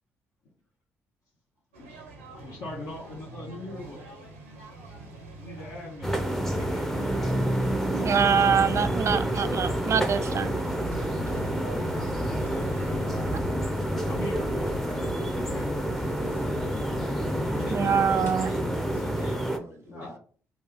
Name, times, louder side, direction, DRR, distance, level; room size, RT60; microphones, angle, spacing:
sound 1, 1.7-13.4, right 2 dB, 90° right, 0.6 m, -43 dB
voice 1, 2.4-4.0 5.4-8.3 13.1-13.3 14.1-15.9 19.9-20.2, left 2 dB, 60° left, 1.0 m, -42 dB
sound 2, 6.0-19.6, right 1 dB, 5° left, 0.6 m, -28 dB
voice 2, 7.9-10.5 13.3-13.4 17.7-18.5, right 7 dB, 45° right, 0.4 m, -24 dB
sound 3, 10.8-18.3, left 2 dB, 30° left, 1.2 m, -42 dB
voice 3, 17.4-20.1, equal, 80° left, 1.8 m, -43 dB
3.2 x 2.4 x 3.8 m
hypercardioid pair, 45°, 7 cm